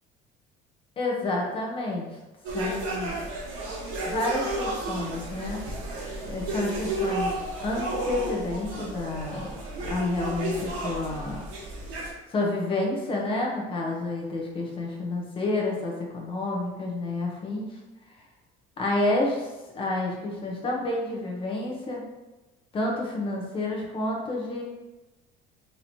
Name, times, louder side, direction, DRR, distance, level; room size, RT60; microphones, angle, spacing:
voice 1, 1.0-2.1 2.5-3.2 4.1-5.6 6.2-11.4 12.3-17.8 18.8-19.5 19.8-22.1 22.7-24.6, left 2 dB, 25° left, -2 dB, 0.8 m, -29 dB
sound 1, 2.5-12.1, right 1 dB, 85° right, 1.1 m, -32 dB
4.3 x 3.0 x 2.7 m, 1.1 s
cardioid pair, 150°, 20 cm